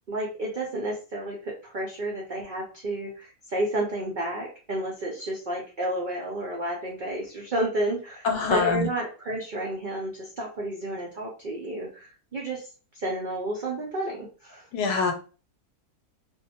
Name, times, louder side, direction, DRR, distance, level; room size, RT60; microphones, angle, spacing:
voice 1, 0.1-14.7, right 1 dB, 85° right, -2 dB, 0.4 m, -31 dB
voice 2, 8.2-8.9 14.7-15.1, left 5 dB, 85° left, 4 dB, 1.1 m, -24 dB
2.6 x 2.0 x 2.7 m, 0.36 s
omnidirectional pair, 1.6 m